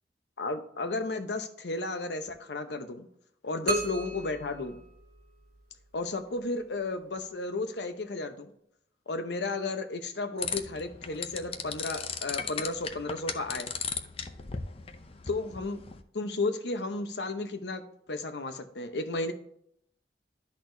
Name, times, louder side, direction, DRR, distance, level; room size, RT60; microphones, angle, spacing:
voice 1, 0.4-3.1 3.4-4.8 5.9-8.5 9.1-13.7 15.3-15.8 16.1-17.8 18.1-19.3, left 3 dB, 75° left, 8 dB, 0.9 m, -33 dB
sound 1, 3.7-5.6, right 2 dB, 55° right, 1.3 m, -34 dB
sound 2, 10.4-16.0, left 6 dB, 35° left, 0.5 m, -37 dB
12.0 x 4.2 x 2.7 m, 0.71 s
head